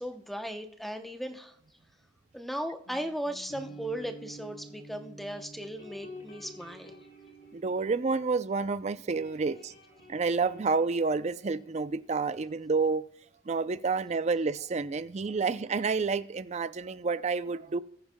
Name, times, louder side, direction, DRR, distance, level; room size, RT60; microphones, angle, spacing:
voice 1, 0.0-1.5 2.3-7.0, equal, ahead, 0.7 m, -37 dB
sound 1, 2.9-8.7 8.9-12.4, right 1 dB, 70° left, 5.2 m, -50 dB
voice 2, 7.5-9.7 10.1-13.0 13.5-17.8, right 4 dB, 35° right, 0.4 m, -29 dB
20.5 x 9.4 x 2.2 m
head